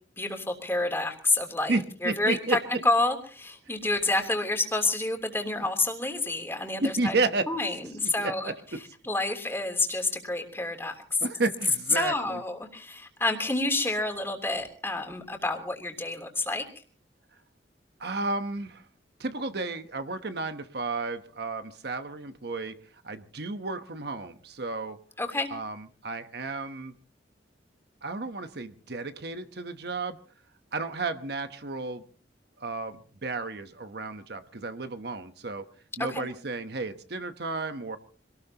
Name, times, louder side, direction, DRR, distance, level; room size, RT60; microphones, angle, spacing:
voice 1, 0.2-7.1 7.5-8.5 9.0-11.0 11.9-16.6 25.2-25.5 36.0-36.3, left 2 dB, 15° left, 4 dB, 3.2 m, -29 dB
voice 2, 1.7-2.6 6.8-7.5 8.2-8.8 11.2-12.4 18.0-18.8 19.2-22.8 23.0-25.0 25.5-26.9 28.0-30.2 30.7-32.0 32.6-35.6 36.0-38.0, right 3 dB, 60° right, 9 dB, 1.1 m, -32 dB
26.0 x 19.0 x 2.9 m, 0.43 s
head